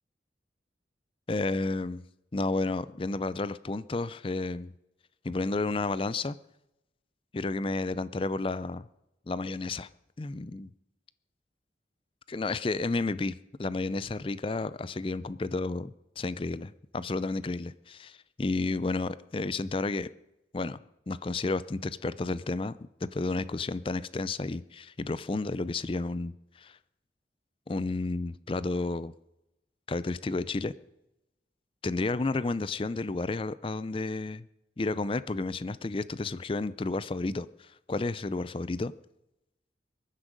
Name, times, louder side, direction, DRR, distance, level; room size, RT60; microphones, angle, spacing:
voice 1, 1.3-2.0 2.3-4.7 5.2-6.4 7.3-8.9 9.3-9.9 10.2-10.7 12.3-20.1 20.5-20.8 21.1-26.8 27.7-29.1 29.9-30.7 31.8-34.5 34.8-38.9, left 3 dB, 30° left, 17 dB, 0.4 m, -31 dB
22.5 x 9.9 x 5.2 m, 0.91 s
head